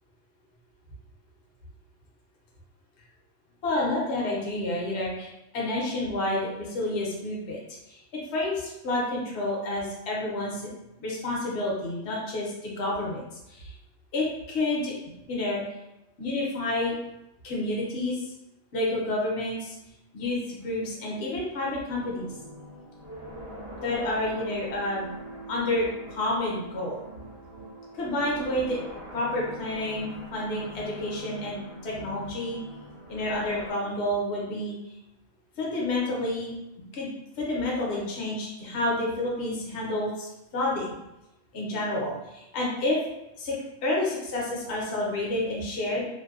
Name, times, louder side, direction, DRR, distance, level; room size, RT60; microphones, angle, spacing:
voice 1, 3.6-7.6 7.9-10.7 11.0-13.2 13.5-13.7 14.1-14.9 15.3-15.6 16.2-16.9 17.4-18.2 18.7-19.8 20.1-22.3 23.8-25.1 25.5-27.0 27.9-28.8 29.1-31.6 31.8-32.6 33.1-34.8 35.6-36.6 36.9-37.1 37.4-40.9 41.5-43.0 43.4-43.5 43.8-46.1, left 1 dB, 60° left, -3 dB, 0.9 m, -29 dB
sound 1, 22.0-33.7, right 1 dB, 35° right, 0.8 m, -43 dB
2.6 x 2.1 x 2.3 m, 0.90 s
omnidirectional pair, 1.4 m